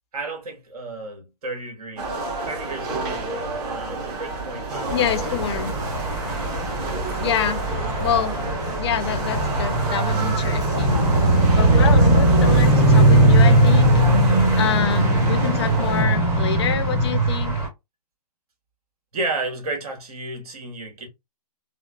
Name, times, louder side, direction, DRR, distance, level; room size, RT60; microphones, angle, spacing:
voice 1, 0.1-5.4 7.2-7.4 19.1-21.1, right 2 dB, 65° right, 1.4 m, -33 dB
sound 1, 2.0-16.0, right 2 dB, 35° right, 1.1 m, -31 dB
voice 2, 4.9-5.7 7.2-7.6 8.0-8.4 8.8-11.0 11.5-17.6, left 8 dB, 40° left, 0.4 m, -27 dB
sound 2, 4.9-17.7, right 1 dB, 15° right, 0.8 m, -19 dB
2.9 x 2.0 x 2.3 m
hypercardioid pair, 140°, 20 cm